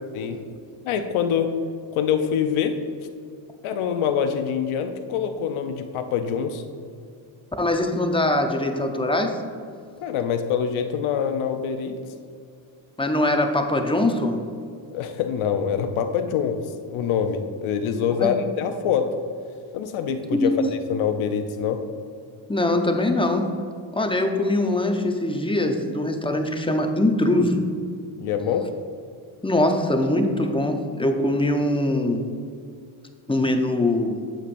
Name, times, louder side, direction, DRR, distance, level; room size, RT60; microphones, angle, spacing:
voice 1, 0.8-1.5 1.9-2.8 3.6-6.6 10.0-12.0 14.9-16.6 16.9-19.1 19.7-20.5 20.9-21.8 28.2-28.7, left 8 dB, 80° left, 7 dB, 0.6 m, -25 dB
voice 2, 7.6-9.4 13.0-14.4 18.2-18.3 20.3-20.5 22.5-23.5 23.9-27.6 29.4-32.2 33.3-34.2, left 1 dB, 10° left, 4 dB, 0.6 m, -22 dB
8.2 x 7.2 x 2.6 m, 2.3 s
cardioid pair, 90°, 48 cm